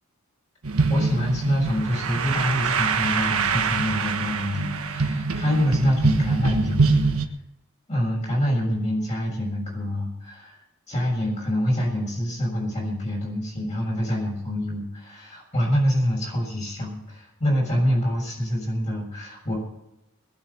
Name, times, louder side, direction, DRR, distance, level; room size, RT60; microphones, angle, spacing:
sound 1, 0.6-7.3, right 4 dB, 85° right, 1.4 m, -24 dB
voice 1, 0.9-7.3 7.9-10.6 10.9-19.6, equal, 30° left, -4 dB, 6.8 m, -26 dB
21.5 x 7.4 x 7.0 m, 0.88 s
head